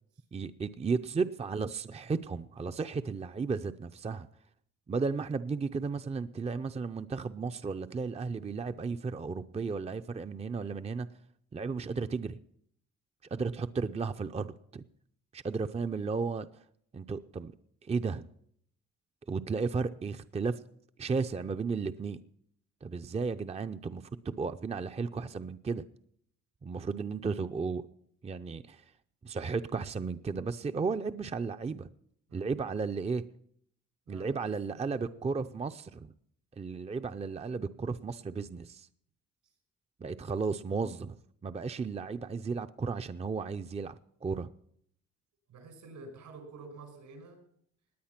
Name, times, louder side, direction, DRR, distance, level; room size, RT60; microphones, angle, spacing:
voice 1, 0.3-4.3 4.9-11.1 11.5-12.4 13.3-14.8 15.3-16.5 16.9-17.5 17.8-18.3 19.3-20.6 21.0-22.2 22.8-25.8 26.6-27.8 28.2-28.8 29.2-31.9 32.3-33.2 34.1-36.1 36.5-38.9 40.0-43.9 44.2-44.5, right 4 dB, 20° right, 9 dB, 0.6 m, -34 dB
voice 2, 32.3-32.8 34.1-35.3 45.5-47.4, right 3 dB, 80° right, 5 dB, 5.7 m, -50 dB
19.0 x 9.5 x 5.9 m, 0.68 s
cardioid pair, 90°, 30 cm